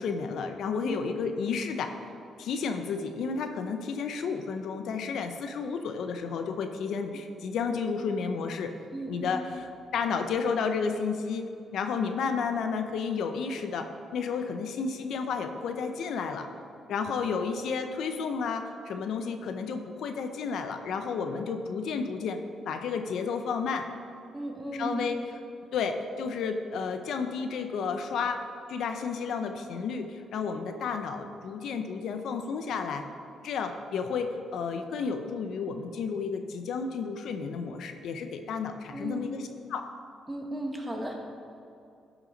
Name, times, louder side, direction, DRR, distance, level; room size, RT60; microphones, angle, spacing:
voice 1, 0.0-1.9 2.4-8.7 9.1-11.5 11.7-16.5 16.9-22.4 22.7-23.9 24.7-25.2 25.7-28.4 28.7-33.1 33.4-39.9, left 5 dB, 70° left, 7 dB, 0.6 m, -32 dB
voice 2, 8.9-9.5 24.3-25.1 38.9-39.2 40.3-41.1, right 1 dB, 10° right, 1 dB, 1.6 m, -35 dB
13.0 x 6.0 x 4.0 m, 2.5 s
cardioid pair, 90°, 0 cm